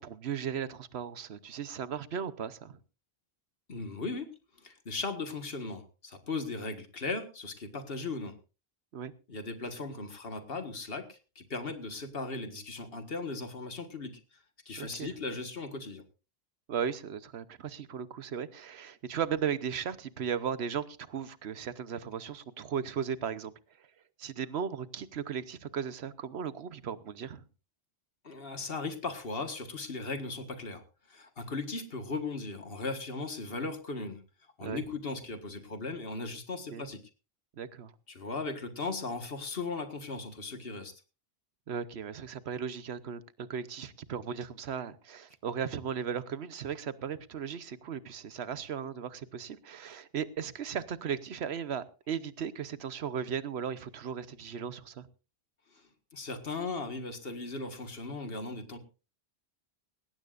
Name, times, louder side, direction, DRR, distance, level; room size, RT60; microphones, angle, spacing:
voice 1, 0.0-2.8 8.9-9.1 14.8-15.1 16.7-23.5 24.2-27.4 34.6-34.9 36.7-36.9 37.6-37.9 41.7-55.1, right 7 dB, 90° right, 1.1 m, -36 dB
voice 2, 3.7-4.3 4.6-8.4 9.3-14.1 14.7-16.0 28.2-34.2 34.6-37.0 38.1-40.9 56.1-58.8, left 3 dB, 65° left, 1.8 m, -37 dB
19.0 x 16.5 x 2.5 m
omnidirectional pair, 1.1 m